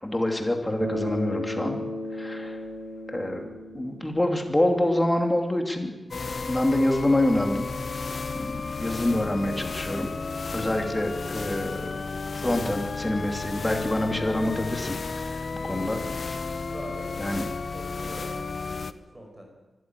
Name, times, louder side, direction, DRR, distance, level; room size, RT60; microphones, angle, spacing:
voice 1, 0.0-1.8 2.1-2.6 3.1-3.4 3.7-5.9 6.5-7.7 8.3-10.1 10.5-12.0 12.3-16.4 17.2-17.5, left 1 dB, 10° left, 3 dB, 2.8 m, -26 dB
Bass guitar, 0.8-5.2, left 1 dB, 70° right, 7.4 m, -35 dB
sound 1, 6.1-18.9, left 4 dB, 45° left, 0.8 m, -33 dB
voice 2, 16.6-17.4 17.7-19.5, right 1 dB, 15° right, 2 dB, 5.0 m, -43 dB
24.5 x 14.0 x 9.8 m, 1.1 s
wide cardioid pair, 170°, 0 cm